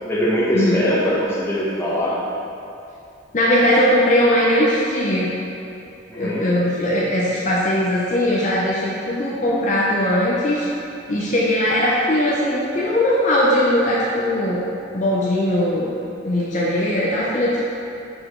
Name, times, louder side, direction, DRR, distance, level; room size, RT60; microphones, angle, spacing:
voice 1, 0.1-2.2 6.1-6.5, equal, 15° left, -7 dB, 1.1 m, -21 dB
voice 2, 3.3-5.3 6.2-10.7 11.1-14.6 14.9-15.9 16.2-17.7, left 1 dB, 40° left, -6 dB, 0.7 m, -19 dB
6.0 x 4.9 x 3.8 m, 2.7 s
head